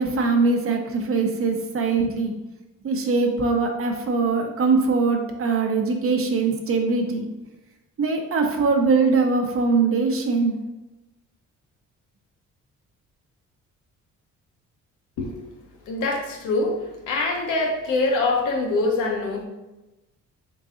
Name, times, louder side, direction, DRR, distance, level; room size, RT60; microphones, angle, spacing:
voice 1, 0.0-2.3 2.8-7.3 8.0-10.5, right 4 dB, 45° right, 3 dB, 0.7 m, -22 dB
voice 2, 15.9-16.8 17.1-19.4, left 3 dB, 85° left, 1 dB, 0.9 m, -24 dB
3.9 x 3.7 x 2.5 m, 1.0 s
cardioid pair, 90°, 30 cm